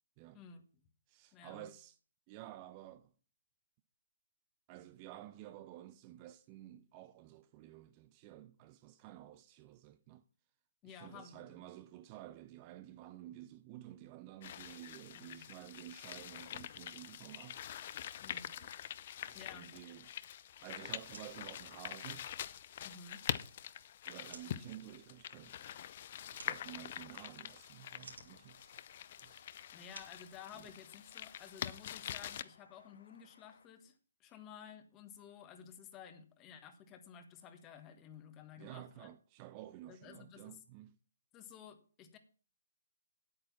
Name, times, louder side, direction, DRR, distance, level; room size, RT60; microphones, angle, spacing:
voice 1, 0.3-0.8 1.3-1.7 10.8-11.6 15.1-15.4 18.2-18.5 19.3-19.7 22.8-23.2 29.7-39.1 39.9-40.6 41.3-42.2, left 7 dB, 20° left, 1.4 m, -54 dB
voice 2, 1.1-2.0 2.3-3.1 4.7-10.2 10.8-17.6 18.6-18.7 19.3-20.1 20.6-22.3 24.1-25.6 26.3-28.8 29.2-29.5 30.5-30.7 38.6-40.9, right 14 dB, 25° right, 0.5 m, -52 dB
sound 1, 14.4-32.4, left 10 dB, 40° left, 0.6 m, -45 dB
sound 2, 21.0-31.1, right 3 dB, 70° right, 3.2 m, -60 dB
sound 3, 24.3-33.7, left 5 dB, 60° left, 1.5 m, -67 dB
9.8 x 8.7 x 5.8 m
figure-of-eight pair, 135°, 0 cm